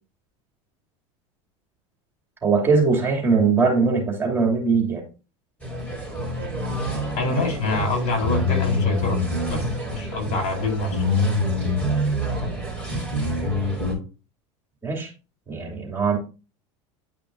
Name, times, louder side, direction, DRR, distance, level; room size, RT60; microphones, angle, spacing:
voice 1, 2.4-5.0 7.3-7.4 14.8-15.1 15.5-16.2, right 4 dB, 15° right, 1 dB, 2.7 m, -21 dB
sound 1, 5.6-14.0, left 1 dB, 10° left, 4.8 m, -26 dB
voice 2, 7.2-9.2 9.5-11.0, left 2 dB, 50° left, 4 dB, 4.0 m, -25 dB
11.0 x 5.4 x 2.6 m, 0.32 s
supercardioid pair, 105°, 15 cm